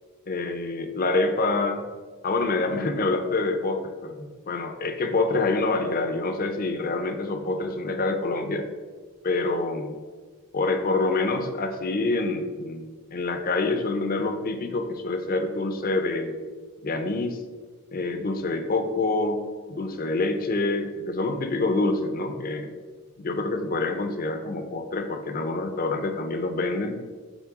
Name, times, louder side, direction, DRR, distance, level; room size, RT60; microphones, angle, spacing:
voice 1, 0.3-1.9 2.2-8.7 9.2-9.9 10.5-16.4 16.8-17.4 17.9-22.7 23.2-26.9, left 3 dB, 40° left, 7 dB, 0.6 m, -26 dB
8.2 x 3.3 x 4.8 m, 1.5 s
head